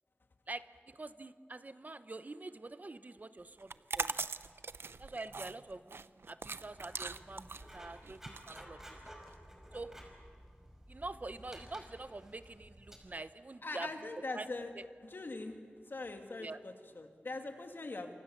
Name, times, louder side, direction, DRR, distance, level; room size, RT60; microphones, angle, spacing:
voice 1, 0.5-4.2 5.0-6.0 6.3-8.8 9.7-9.9 10.9-13.9 14.3-14.5 16.4-16.6, right 2 dB, 45° right, 13 dB, 0.9 m, -45 dB
sound 1, 3.6-9.3, right 4 dB, 80° right, 0.7 m, -41 dB
Writing, 6.5-13.0, equal, 10° right, 5.4 m, -54 dB
voice 2, 13.6-14.7 15.0-15.6 15.9-18.1, left 2 dB, 65° left, 5 dB, 2.6 m, -42 dB
27.5 x 25.0 x 7.3 m, 2.1 s
wide cardioid pair, 75°, 4 cm